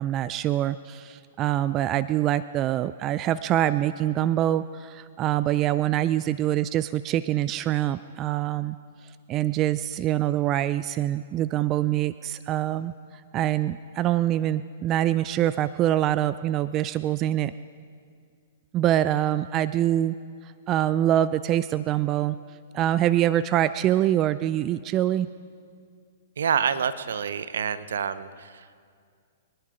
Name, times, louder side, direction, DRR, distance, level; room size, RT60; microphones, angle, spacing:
voice 1, 0.0-8.8 9.3-12.9 13.3-17.5 18.7-20.1 20.4-22.4 22.7-25.3, right 12 dB, 30° right, 15 dB, 0.3 m, -24 dB
voice 2, 26.4-28.7, right 7 dB, 75° right, 15 dB, 0.7 m, -27 dB
23.5 x 11.0 x 5.1 m, 2.1 s
hypercardioid pair, 120°, 0 cm